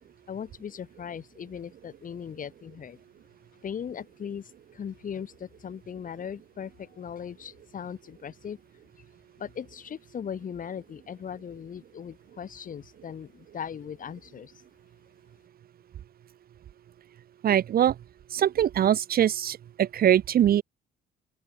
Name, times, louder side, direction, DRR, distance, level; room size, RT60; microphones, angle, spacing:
voice 1, 0.3-3.0 3.6-8.6 9.4-14.5, left 8 dB, 45° left, 7.0 m, -38 dB
voice 2, 17.4-17.9 18.3-20.6, right 10 dB, 50° right, 1.1 m, -22 dB
open air
cardioid pair, 110°, 19 cm